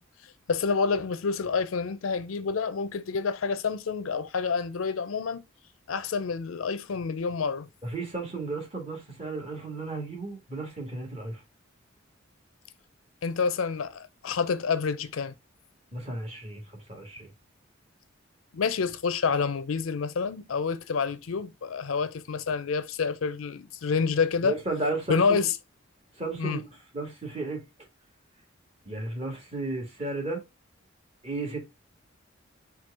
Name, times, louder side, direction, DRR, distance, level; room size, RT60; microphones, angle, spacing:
voice 1, 0.5-5.4 5.9-7.7 13.2-15.3 18.5-24.5 25.1-25.5 26.4-26.6, left 5 dB, 90° left, 0.5 m, -28 dB
voice 2, 7.8-11.4 15.9-17.3 24.4-25.5 26.1-26.6 26.9-27.6 28.8-30.4 31.2-31.6, right 2 dB, 30° right, 1.7 m, -34 dB
4.5 x 2.3 x 4.6 m
head